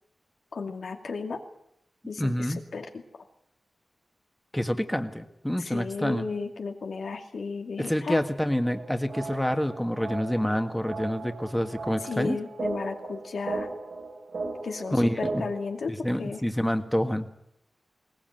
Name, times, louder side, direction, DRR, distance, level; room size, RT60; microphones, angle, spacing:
voice 1, 0.5-1.4 2.1-3.2 5.6-8.2 12.0-13.7 14.4-16.4, left 4 dB, 85° left, 4 dB, 2.4 m, -34 dB
voice 2, 2.2-2.6 4.5-6.2 7.8-12.4 14.9-15.5 15.9-17.3, equal, 5° left, 7 dB, 1.7 m, -27 dB
sound 1, 8.6-15.6, right 3 dB, 85° right, 7.7 m, -37 dB
21.0 x 18.5 x 9.2 m, 0.76 s
wide cardioid pair, 80°, 0 cm